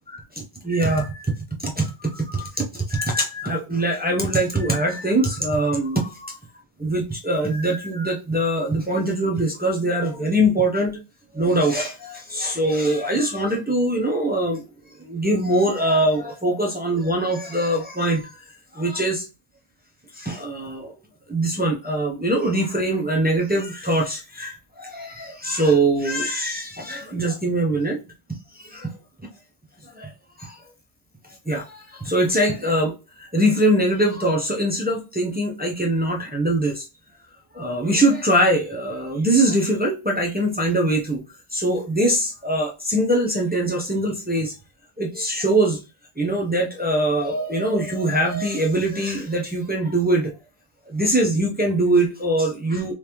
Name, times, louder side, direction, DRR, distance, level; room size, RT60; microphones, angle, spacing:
voice 1, 0.1-1.3 1.6-6.4 6.8-11.0 11.3-14.6 15.0-18.3 18.7-19.2 20.1-20.9 21.3-28.0 28.5-28.9 29.9-30.1 30.4-30.6 31.5-36.9 37.5-41.2 41.5-44.5 45.0-45.8 46.2-50.3 50.9-52.9, right 1 dB, 15° right, 0.5 m, -22 dB
3.4 x 3.1 x 2.9 m
omnidirectional pair, 1.0 m